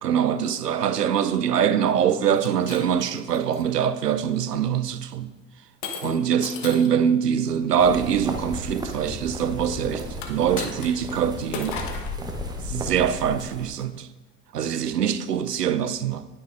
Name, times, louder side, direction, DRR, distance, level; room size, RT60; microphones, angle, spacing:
voice 1, 0.0-5.3 6.0-11.8 12.6-14.1 14.5-16.3, right 8 dB, 80° right, 0.7 m, -23 dB
Shatter, 2.3-3.7 4.3-4.6 5.8-7.0 10.1-11.2 11.5-12.2, left 5 dB, 45° left, 1.3 m, -36 dB
sound 1, 7.8-13.9, equal, 10° right, 1.0 m, -34 dB
19.0 x 6.5 x 2.6 m
figure-of-eight pair, 85°, 47 cm